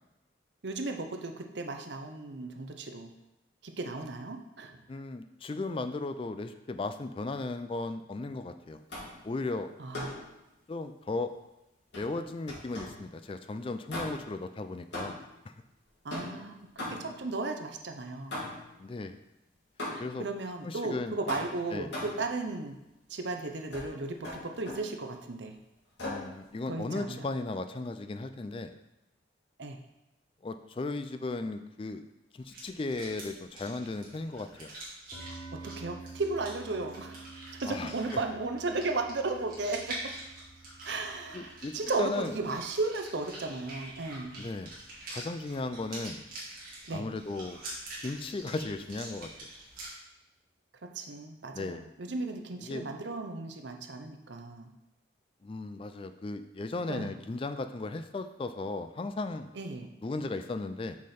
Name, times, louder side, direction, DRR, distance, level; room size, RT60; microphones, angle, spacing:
voice 1, 0.6-3.1 3.6-4.8 9.8-10.3 16.0-18.3 20.2-22.7 23.1-25.6 26.7-27.3 29.6-29.8 35.6-37.2 37.6-40.0 40.8-44.4 46.9-47.1 50.8-54.7 56.9-57.1 59.5-59.9, right 3 dB, 70° right, 5 dB, 0.7 m, -35 dB
voice 2, 4.9-8.8 9.2-9.7 10.7-11.3 12.0-15.2 15.5-15.6 18.8-19.2 20.0-20.3 20.6-21.2 21.7-21.9 26.0-28.7 30.4-32.0 32.3-34.7 37.7-38.2 41.3-42.3 44.4-44.7 45.1-46.2 46.9-47.6 48.0-49.3 51.5-51.8 52.6-52.8 55.4-59.5 60.0-61.0, left 3 dB, 30° left, 9 dB, 0.3 m, -36 dB
sound 1, 8.9-9.3 9.9-10.3 11.9-13.1 13.9-14.4 14.9-15.4 16.1-17.3 18.3-18.8 19.8-20.3 21.3-22.3 23.7-23.9 24.2-24.9 26.0-26.3, left 1 dB, 70° left, 2.7 m, -39 dB
sound 2, 32.4-49.9, right 2 dB, 50° right, 2.1 m, -46 dB
sound 3, 35.1-45.6, right 3 dB, 5° right, 2.8 m, -51 dB
6.2 x 5.6 x 4.3 m, 0.95 s
head